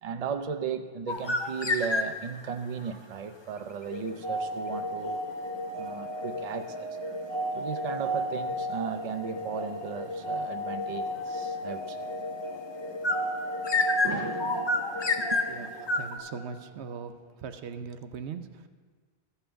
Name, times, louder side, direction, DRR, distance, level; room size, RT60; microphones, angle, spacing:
voice 1, 0.0-5.2 5.8-6.9 7.5-12.0 14.0-15.9, right 6 dB, 45° right, 7 dB, 0.6 m, -36 dB
sound 1, 1.1-2.4 13.0-16.2, left 3 dB, 30° left, 0.5 m, -29 dB
sound 2, 3.8-16.6, equal, 65° left, 1.5 m, -34 dB
voice 2, 15.5-17.2 17.4-18.7, right 6 dB, 80° right, 9 dB, 0.9 m, -40 dB
14.0 x 5.6 x 6.9 m, 1.5 s
omnidirectional pair, 1.1 m